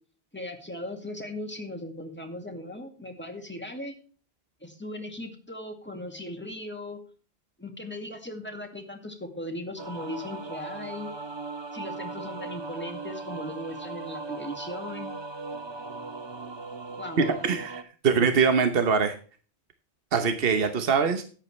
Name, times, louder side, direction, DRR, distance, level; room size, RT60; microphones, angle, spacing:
voice 1, 0.3-3.9 4.6-7.0 7.6-11.1 11.7-15.1 17.0-17.2, left 1 dB, 10° left, 3 dB, 2.1 m, -38 dB
sound 1, 9.8-17.8, right 3 dB, 30° right, 0.9 m, -38 dB
voice 2, 17.2-19.1 20.1-21.2, right 5 dB, 65° right, 8 dB, 1.2 m, -23 dB
13.5 x 10.0 x 3.2 m, 0.39 s
omnidirectional pair, 1.1 m